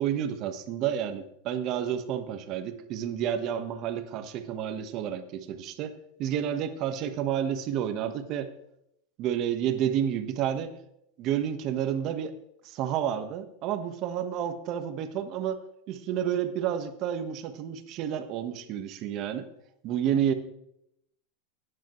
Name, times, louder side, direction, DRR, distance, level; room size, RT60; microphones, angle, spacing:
voice 1, 0.0-5.9 6.2-8.5 9.2-10.7 11.2-12.4 12.6-19.5 19.8-20.3, right 9 dB, 45° right, 8 dB, 1.4 m, -30 dB
17.0 x 10.5 x 3.2 m, 0.77 s
supercardioid pair, 130°, 0 cm